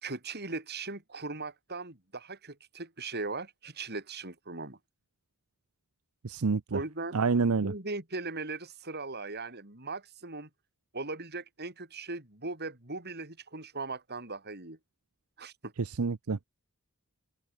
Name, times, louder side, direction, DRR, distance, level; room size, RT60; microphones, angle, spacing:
voice 1, 0.0-4.8 6.7-7.2 7.6-10.5 10.9-14.8 15.4-15.7, right 3 dB, 50° right, 5.3 m, -39 dB
voice 2, 6.2-6.8 7.1-7.7 15.9-16.4, right 4 dB, 80° right, 0.7 m, -28 dB
open air
head